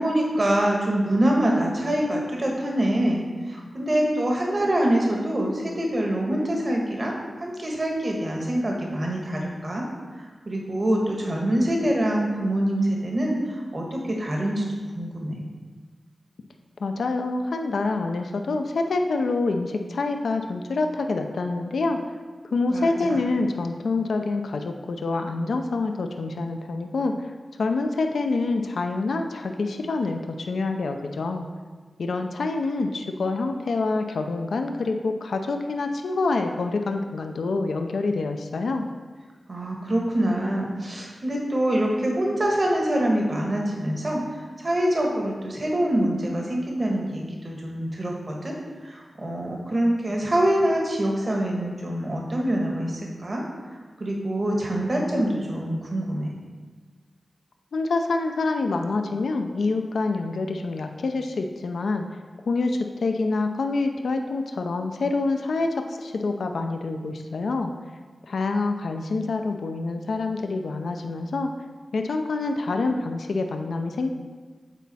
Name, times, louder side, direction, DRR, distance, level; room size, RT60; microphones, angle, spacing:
voice 1, 0.0-9.8 10.4-14.6 14.9-15.4 22.7-23.2 39.5-44.2 44.6-48.6 48.8-53.4 54.0-56.3, right 1 dB, 55° right, -1 dB, 1.4 m, -25 dB
voice 2, 16.8-22.0 22.5-27.3 27.6-31.5 32.0-38.9 57.7-62.0 62.4-65.7 66.0-67.7 68.3-71.5 71.9-74.1, left 3 dB, 90° left, 5 dB, 0.5 m, -26 dB
8.1 x 4.1 x 4.2 m, 1.4 s
cardioid pair, 45°, 0 cm